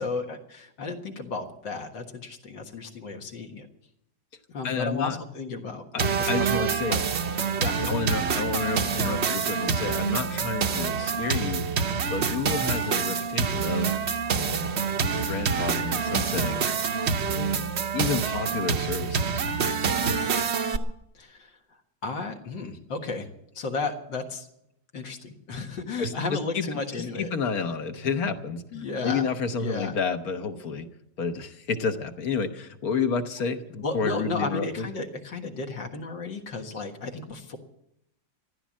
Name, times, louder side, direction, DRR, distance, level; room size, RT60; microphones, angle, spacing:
voice 1, 0.0-3.7 4.5-7.0 7.6-8.0 21.1-21.6 22.0-23.3 23.5-24.5 24.9-27.3 28.7-29.3 29.6-30.0 33.8-37.6, left 3 dB, 75° left, 3 dB, 2.3 m, -33 dB
voice 2, 4.6-5.2 5.9-7.0 7.9-14.1 14.3-14.7 15.2-16.7 17.3-19.4 26.0-28.6 29.0-30.9 31.2-34.9, left 5 dB, 55° left, 8 dB, 1.5 m, -30 dB
sound 1, 6.0-20.8, right 6 dB, 50° right, 0.9 m, -26 dB
15.0 x 11.5 x 7.4 m, 0.80 s
omnidirectional pair, 2.0 m